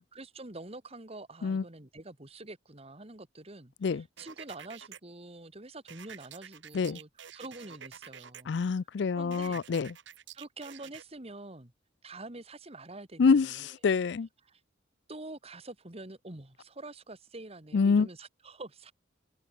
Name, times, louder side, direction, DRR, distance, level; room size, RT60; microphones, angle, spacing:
voice 1, 0.0-8.5 9.1-9.6 10.3-11.7 12.0-13.7 14.5-14.6 15.1-18.9, right 2 dB, 30° right, 2.1 m, -46 dB
sound 1, 4.2-5.0 5.9-8.4 9.3-11.0, right 8 dB, 65° right, 1.2 m, -48 dB
voice 2, 8.5-9.9 13.2-14.3 17.7-18.1, left 5 dB, 60° left, 0.4 m, -26 dB
head